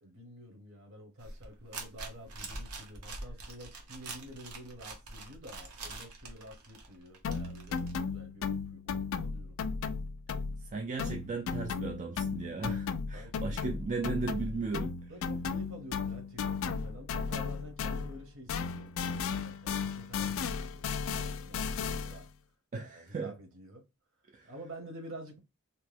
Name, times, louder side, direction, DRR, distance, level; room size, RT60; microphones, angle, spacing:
voice 1, 0.0-9.6 13.1-13.9 15.1-22.3 22.8-23.8 24.4-25.4, equal, 60° right, 1.0 m, -49 dB
sound 1, 1.2-7.9, right 3 dB, 90° right, 0.9 m, -44 dB
sound 2, 7.2-10.7 11.0-18.2 18.5-22.3, left 5 dB, 60° left, 0.3 m, -35 dB
voice 2, 10.7-14.9 22.7-23.3 24.3-24.5, right 4 dB, 35° right, 0.3 m, -36 dB
2.8 x 2.2 x 3.3 m
head